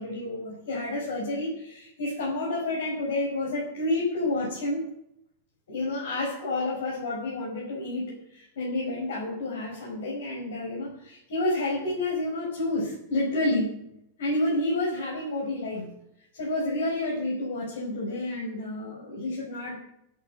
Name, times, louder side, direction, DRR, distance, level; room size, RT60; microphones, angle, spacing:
voice 1, 0.0-4.8 5.7-13.7 14.2-15.9 16.3-19.8, left 2 dB, 60° left, -3 dB, 5.4 m, -29 dB
12.5 x 8.2 x 7.8 m, 0.80 s
figure-of-eight pair, 90°, 0 cm